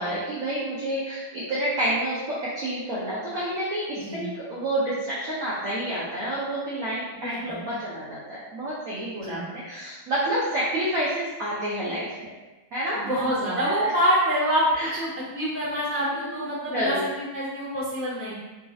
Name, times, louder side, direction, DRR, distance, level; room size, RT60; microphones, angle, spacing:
voice 1, 0.0-12.3 12.7-13.2 13.8-13.9 14.7-14.9 16.1-16.4 16.7-17.0, right 1 dB, 70° right, -8 dB, 0.8 m, -29 dB
voice 2, 7.2-7.6 9.2-9.4 12.9-14.6 14.9-18.3, equal, 10° left, -11 dB, 0.7 m, -26 dB
4.2 x 2.7 x 2.3 m, 1.1 s
omnidirectional pair, 2.4 m